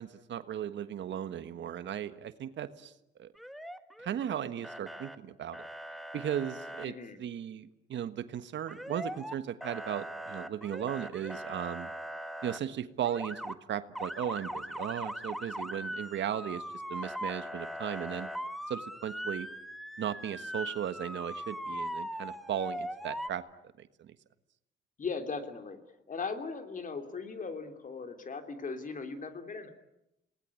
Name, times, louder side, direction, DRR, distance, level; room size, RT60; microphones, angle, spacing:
voice 1, 0.0-2.9 3.2-3.3 4.0-5.6 6.1-11.9 12.4-16.6 16.9-18.3 18.7-19.5 20.0-23.4 23.8-24.1, right 10 dB, 65° right, 11 dB, 1.5 m, -36 dB
Motor vehicle (road) / Siren, 3.4-4.3 4.6-5.2 5.5-6.9 8.7-9.3 9.6-12.6 13.0-13.5 13.9-23.3, equal, ahead, 1.6 m, -40 dB
voice 2, 6.8-7.2 25.0-25.8 26.1-29.7, left 4 dB, 40° left, 7 dB, 3.3 m, -38 dB
28.5 x 19.5 x 9.9 m, 0.87 s
cardioid pair, 90°, 20 cm